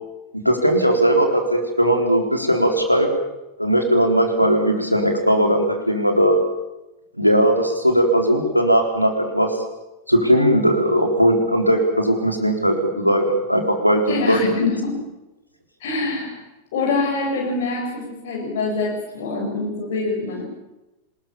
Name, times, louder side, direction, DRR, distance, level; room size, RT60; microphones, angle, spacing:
voice 1, 0.4-3.1 3.6-6.4 7.2-9.6 10.1-14.4, equal, 90° left, 4 dB, 4.1 m, -18 dB
voice 2, 14.1-15.0 15.8-16.4 16.7-20.4, left 3 dB, 55° left, 0 dB, 7.2 m, -24 dB
25.5 x 21.0 x 7.2 m, 0.99 s
figure-of-eight pair, 90°, 0 cm